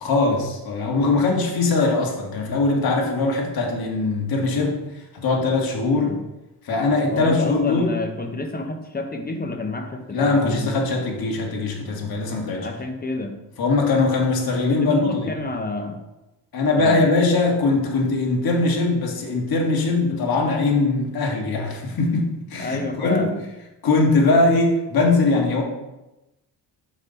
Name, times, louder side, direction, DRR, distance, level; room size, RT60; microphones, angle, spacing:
voice 1, 0.0-6.2 6.6-8.1 10.1-12.7 13.6-15.3 16.5-23.3 23.8-25.6, left 3 dB, 60° left, 0 dB, 1.7 m, -21 dB
voice 2, 7.1-10.8 12.3-13.4 14.7-16.0 16.8-17.0 20.1-20.3 22.6-23.4, left 2 dB, 25° left, 6 dB, 0.7 m, -30 dB
5.9 x 5.5 x 4.1 m, 0.97 s
cardioid pair, 110°, 40 cm